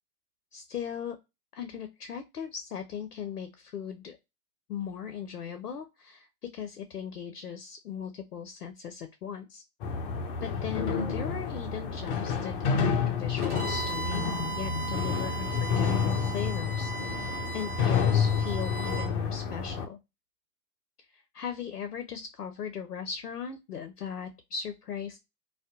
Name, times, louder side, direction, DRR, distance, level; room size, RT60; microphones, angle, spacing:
voice 1, 0.5-1.2 1.5-4.2 4.7-9.6 10.4-20.0 21.1-25.2, left 7 dB, 80° left, 8 dB, 0.6 m, -38 dB
sound 1, 9.8-19.9, left 6 dB, 40° left, 0.5 m, -29 dB
Bowed string instrument, 13.4-19.1, right 5 dB, 25° right, 1.0 m, -38 dB
2.6 x 2.2 x 3.5 m, 0.23 s
figure-of-eight pair, 105°, 45 cm